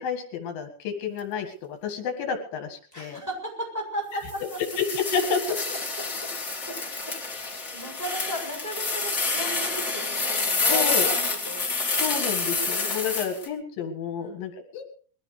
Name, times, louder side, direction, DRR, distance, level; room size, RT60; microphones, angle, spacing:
voice 1, 0.0-3.2 4.8-5.4 10.7-11.1 12.0-14.8, left 6 dB, 80° left, 5 dB, 3.7 m, -30 dB
voice 2, 2.9-4.6 6.0-6.3 6.6-11.6 14.2-14.4, equal, 5° right, -2 dB, 7.6 m, -36 dB
sound 1, 4.3-13.5, left 3 dB, 25° left, 2.8 m, -28 dB
22.0 x 16.5 x 3.3 m, 0.42 s
omnidirectional pair, 4.0 m